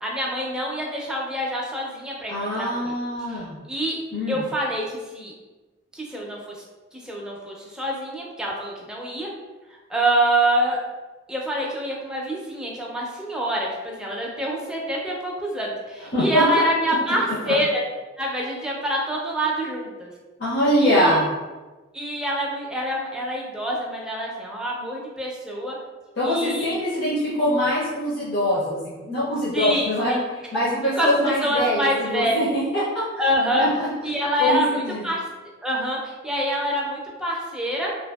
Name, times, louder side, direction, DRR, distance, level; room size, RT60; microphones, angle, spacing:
voice 1, 0.0-2.9 3.3-4.0 4.3-5.3 5.9-6.6 6.9-9.3 9.9-10.8 11.3-17.8 18.2-20.1 20.8-21.2 21.9-25.8 26.2-26.7 29.5-30.2 30.5-30.6 31.0-32.3 33.2-33.7 34.0-35.2 35.6-37.9, right 1 dB, 5° right, -3 dB, 0.3 m, -26 dB
voice 2, 2.3-3.6 4.1-4.4 16.1-16.4 17.4-17.5 20.4-21.3 26.2-33.0 33.5-33.9 34.4-35.0, equal, 65° left, -9 dB, 0.6 m, -23 dB
2.6 x 2.6 x 2.2 m, 1.2 s
head